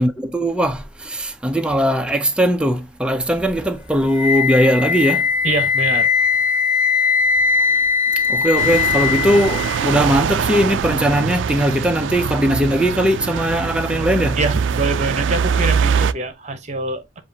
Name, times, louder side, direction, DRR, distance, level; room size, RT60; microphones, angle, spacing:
voice 1, 0.0-5.3 8.3-14.4, equal, 5° right, 0.5 m, -19 dB
Wind instrument woodwind instrument, 4.1-10.1, left 6 dB, 50° left, 0.8 m, -19 dB
voice 2, 5.4-6.1 14.4-17.2, right 3 dB, 40° right, 0.9 m, -24 dB
sound 1, 8.6-16.1, right 6 dB, 75° right, 0.3 m, -22 dB
7.4 x 2.5 x 2.8 m
head